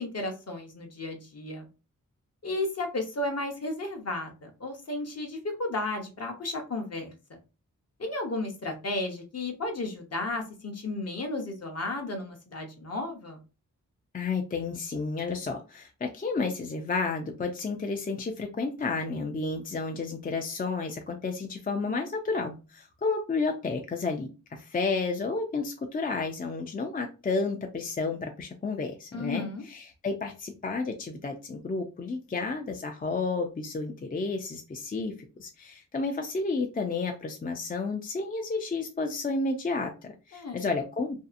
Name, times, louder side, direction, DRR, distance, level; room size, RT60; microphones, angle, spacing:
voice 1, 0.0-1.7 2.4-7.1 8.0-13.4 29.1-29.6 40.3-40.7, left 2 dB, 50° left, 3 dB, 0.7 m, -33 dB
voice 2, 14.1-41.3, left 3 dB, 30° left, 4 dB, 0.3 m, -31 dB
2.7 x 2.4 x 2.5 m, 0.31 s
wide cardioid pair, 80°, 32 cm